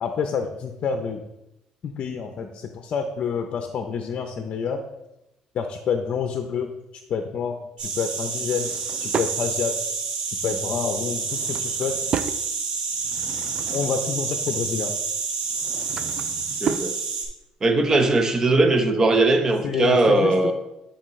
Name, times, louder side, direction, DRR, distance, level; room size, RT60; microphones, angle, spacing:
voice 1, 0.0-1.2 1.8-4.8 5.5-6.7 7.1-8.7 9.0-9.7 10.3-12.1 13.7-14.9 19.6-20.5, left 6 dB, 50° left, 6 dB, 0.6 m, -28 dB
sound 1, 7.8-17.2, right 5 dB, 70° right, 1.8 m, -29 dB
Drawer open or close / Wood, 8.4-9.4 11.1-12.4 12.9-14.1 15.4-16.9, right 7 dB, 45° right, 0.3 m, -33 dB
voice 2, 16.6-17.0 17.6-20.5, right 2 dB, 25° right, 5 dB, 0.9 m, -19 dB
10.0 x 4.3 x 3.1 m, 0.92 s
cardioid pair, 115°, 2 cm